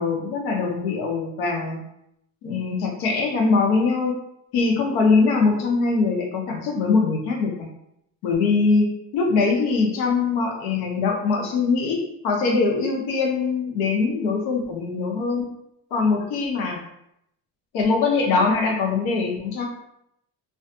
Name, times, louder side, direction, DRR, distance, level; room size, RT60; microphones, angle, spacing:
voice 1, 0.0-1.8 2.4-4.2 4.5-7.5 8.2-15.5 15.9-16.8 17.7-19.7, left 4 dB, 85° left, 1 dB, 0.7 m, -22 dB
2.5 x 2.3 x 2.5 m, 0.79 s
supercardioid pair, 85°, 37 cm